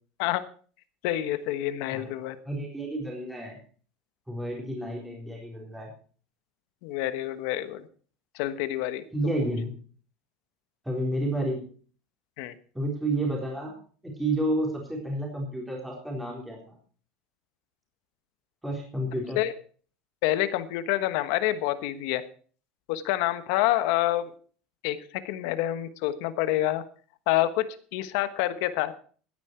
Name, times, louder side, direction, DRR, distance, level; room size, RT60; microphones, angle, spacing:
voice 1, 1.0-2.4 6.8-7.9 8.3-9.0 12.4-12.5 19.3-19.5 20.2-22.3 22.9-24.3 24.8-26.8 27.3-28.9, left 14 dB, 70° left, 12 dB, 1.3 m, -27 dB
voice 2, 2.5-3.6 4.3-5.9 9.1-9.8 10.8-11.6 12.7-13.7 14.0-16.8 18.6-19.4, right 1 dB, 5° right, -1 dB, 3.9 m, -30 dB
16.5 x 9.8 x 4.5 m, 0.42 s
supercardioid pair, 140°, 0 cm